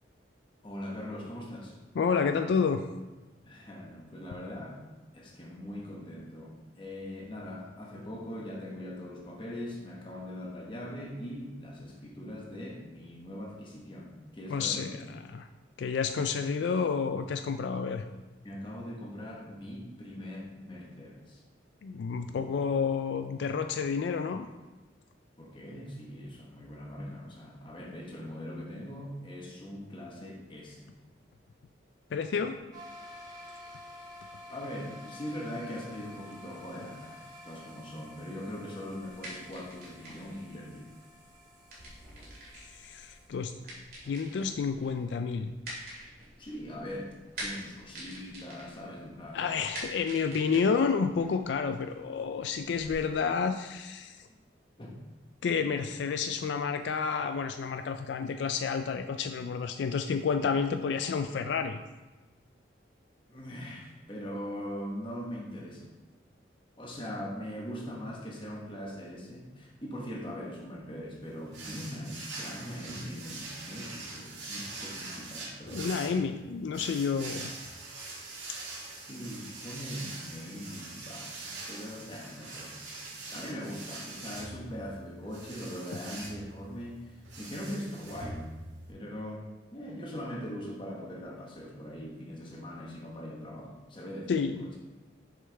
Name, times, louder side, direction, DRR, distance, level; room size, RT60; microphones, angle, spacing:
voice 1, 0.6-1.8 3.5-4.8 5.1-14.9 18.4-21.4 25.4-30.9 33.5-33.6 34.5-40.9 46.4-47.1 47.4-49.5 54.3-54.4 54.8-55.0 63.3-65.9 66.8-76.0 79.1-82.8 83.3-88.4 88.9-94.7, equal, 25° left, -1 dB, 1.1 m, -41 dB
voice 2, 2.0-2.8 14.5-15.5 15.8-18.0 21.8-24.5 32.1-32.6 42.7-43.5 44.1-45.5 49.3-54.3 55.4-61.8 75.7-77.5 94.3-94.6, left 5 dB, 75° left, 8 dB, 0.3 m, -30 dB
sound 1, 32.7-43.3, left 1 dB, 20° right, 1.0 m, -50 dB
sound 2, 39.2-52.9, right 1 dB, 55° right, 2.2 m, -47 dB
sound 3, 71.5-88.9, right 3 dB, 85° right, 1.6 m, -43 dB
6.4 x 5.6 x 3.4 m, 1.2 s
head